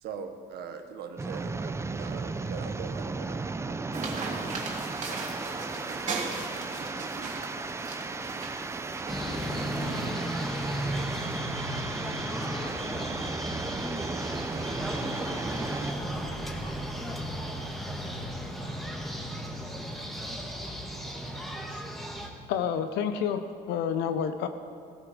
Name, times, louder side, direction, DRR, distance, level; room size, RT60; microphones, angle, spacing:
voice 1, 0.0-4.4, right 6 dB, 75° right, 6 dB, 1.4 m, -41 dB
sound 1, 1.2-15.9, right 3 dB, 15° right, 0.6 m, -35 dB
sound 2, 3.9-10.1, right 4 dB, 45° right, 2.7 m, -37 dB
sound 3, 9.1-22.3, equal, ahead, 1.7 m, -34 dB
voice 2, 11.7-13.9 14.5-18.3 18.6-19.7, left 1 dB, 25° left, -4 dB, 4.4 m, -49 dB
voice 3, 22.5-23.4 23.7-24.5, left 8 dB, 85° left, 8 dB, 0.9 m, -29 dB
18.0 x 13.0 x 5.3 m, 2.2 s
cardioid pair, 110°, 17 cm